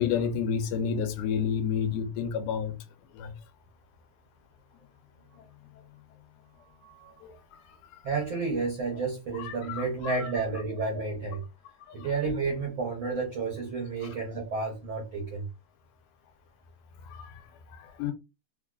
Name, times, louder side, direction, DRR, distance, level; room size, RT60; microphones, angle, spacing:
voice 1, 0.0-2.8 3.1-3.3 7.2-7.3 9.4-10.2 11.9-12.0 14.0-14.1 17.1-17.3 17.7-18.1, left 7 dB, 85° left, 2.1 m, -30 dB
voice 2, 6.8-7.1 8.0-11.4 11.9-15.5, right 4 dB, 80° right, 1.1 m, -31 dB
4.8 x 2.3 x 2.4 m
omnidirectional pair, 3.5 m